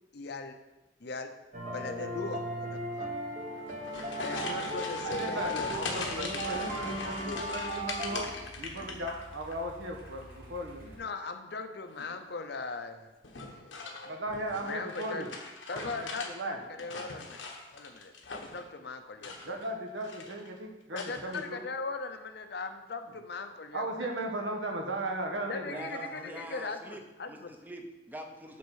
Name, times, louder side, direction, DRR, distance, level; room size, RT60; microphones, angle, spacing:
voice 1, 0.1-0.6 1.0-1.3 1.7-3.1 4.2-6.7 7.2-7.4 8.1-8.3 11.0-13.1 13.3-14.2 14.6-15.2 15.7-19.5 20.9-24.1 25.5-27.5, left 3 dB, 60° left, 7 dB, 0.7 m, -40 dB
sound 1, 1.5-8.1, right 1 dB, 40° right, 1.2 m, -36 dB
sound 2, 3.5-9.6 9.9-10.4 11.8-12.2 13.2-16.3 16.6-18.7 19.1-19.7 20.0-20.5 21.0-21.4, left 3 dB, 90° left, 1.2 m, -41 dB
voice 2, 5.0-5.6 5.9-8.3 8.6-11.0 14.0-15.3 15.7-16.6 19.4-21.6 23.7-26.4, right 1 dB, 75° right, 2 dB, 1.4 m, -37 dB
sound 3, 5.9-11.0, left 1 dB, 60° right, 3.0 m, -51 dB
voice 3, 25.7-27.0 27.3-28.6, right 1 dB, 10° right, 4 dB, 0.7 m, -44 dB
8.5 x 4.3 x 6.4 m, 1.0 s
head